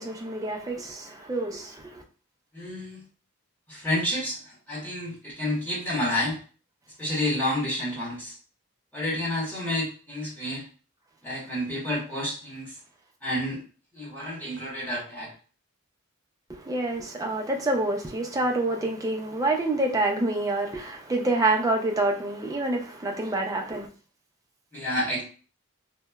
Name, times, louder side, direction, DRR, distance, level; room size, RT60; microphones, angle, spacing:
voice 1, 0.0-2.0 16.5-23.9, right 2 dB, 15° right, 0.4 m, -27 dB
voice 2, 2.5-3.0 3.7-4.4 4.7-6.3 7.0-8.3 8.9-10.6 11.2-12.7 13.2-13.6 13.9-15.3 24.7-25.2, left 1 dB, 10° left, 1.0 m, -29 dB
2.9 x 2.0 x 2.2 m
head